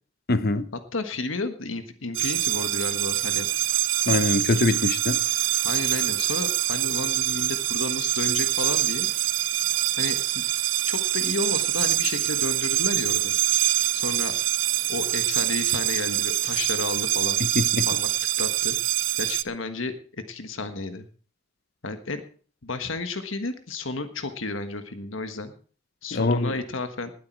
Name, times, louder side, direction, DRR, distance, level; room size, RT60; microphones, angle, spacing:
voice 1, 0.3-0.7 4.1-5.2 17.4-17.9 26.1-26.5, left 2 dB, 55° left, 13 dB, 0.9 m, -23 dB
voice 2, 0.9-3.5 5.6-9.1 10.0-10.4 10.9-13.3 13.9-14.3 14.9-17.4 17.9-18.1 18.4-18.8 19.2-20.0 20.3-21.1 21.8-22.2 22.6-25.5 26.0-27.1, left 3 dB, 85° left, 9 dB, 1.5 m, -32 dB
sound 1, 2.1-19.4, right 15 dB, 70° right, 0.5 m, -25 dB
19.5 x 8.4 x 4.6 m, 0.42 s
head